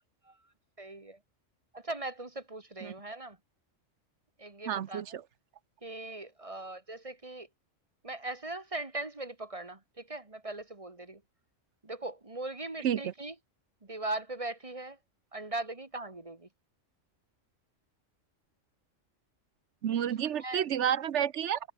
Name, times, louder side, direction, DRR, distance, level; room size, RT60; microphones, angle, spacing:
voice 1, 0.8-1.2 1.7-3.4 4.4-5.0 5.8-7.5 8.0-11.2 11.8-13.3 13.8-15.0 15.3-16.5 20.2-20.6, right 2 dB, 25° right, 1.8 m, -39 dB
voice 2, 4.7-5.2 12.8-13.1 19.8-21.6, right 9 dB, 65° right, 1.0 m, -30 dB
omnidirectional pair, 1.3 m